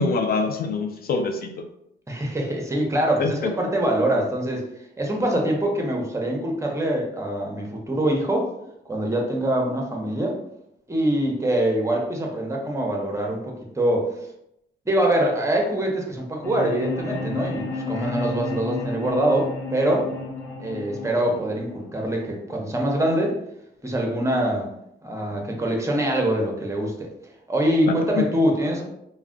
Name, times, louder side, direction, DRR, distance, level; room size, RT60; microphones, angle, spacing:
voice 1, 0.0-1.7 3.2-3.5 27.9-28.2, left 4 dB, 50° left, 5 dB, 0.4 m, -25 dB
voice 2, 2.1-4.6 5.0-8.5 8.9-10.4 10.9-14.1 14.9-20.1 20.6-23.4 23.8-24.7 25.0-27.1 27.5-28.8, right 1 dB, 15° right, 0 dB, 0.7 m, -24 dB
sound 1, 16.4-22.4, left 3 dB, 80° left, 0.7 m, -32 dB
2.3 x 2.1 x 3.6 m, 0.79 s
cardioid pair, 90°, 20 cm